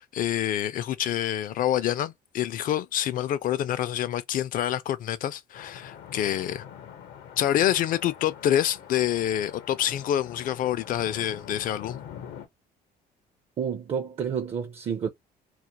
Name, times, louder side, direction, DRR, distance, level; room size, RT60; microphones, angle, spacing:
voice 1, 0.0-6.6 7.4-12.0, left 11 dB, 55° left, 0.4 m, -27 dB
sound 1, 5.5-12.5, left 9 dB, 80° left, 0.8 m, -44 dB
voice 2, 13.6-15.1, right 7 dB, 40° right, 0.4 m, -29 dB
2.4 x 2.1 x 2.8 m
cardioid pair, 110°, 17 cm